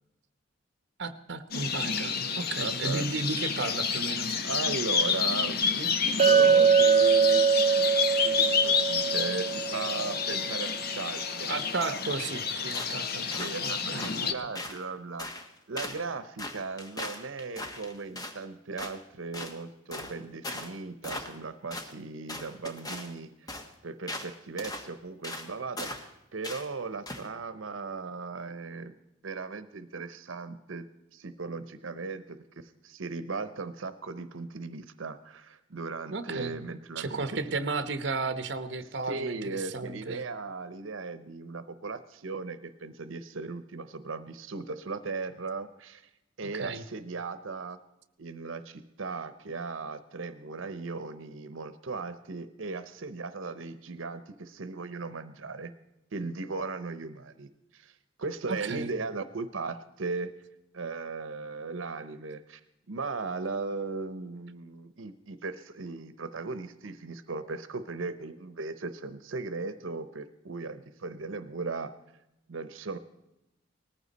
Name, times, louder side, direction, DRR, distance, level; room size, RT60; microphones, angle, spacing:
voice 1, 1.0-4.3 11.5-14.3 36.1-36.6 37.0-40.2 46.4-46.8 58.5-58.9, right 3 dB, 60° right, 10 dB, 0.9 m, -34 dB
sound 1, 1.5-14.3, left 6 dB, 50° left, 0.9 m, -30 dB
voice 2, 2.6-3.1 4.4-7.4 8.2-11.5 13.2-15.3 15.7-28.9 29.2-30.9 31.1-37.3 39.1-46.1 46.4-47.8 48.2-55.7 56.1-60.3 60.7-62.6 62.9-71.9 72.5-73.0, right 4 dB, 85° right, 12 dB, 0.8 m, -37 dB
Chink clink, 6.2-10.4, right 6 dB, 35° right, 0.7 m, -23 dB
sound 2, 12.7-13.0 13.3-14.2 14.6-14.8 15.2-15.5 15.8-16.0 16.4-18.4 18.8-19.0 19.3-19.6 19.9-20.1 20.4-20.7 21.0-21.4 21.7-21.9 22.3-23.1 23.5-23.7 24.1-24.3 24.6-24.9 25.2-25.5 25.8-26.1 26.4-26.7 27.1-27.3, left 1 dB, 20° left, 1.2 m, -38 dB
19.0 x 14.5 x 4.1 m, 0.89 s
head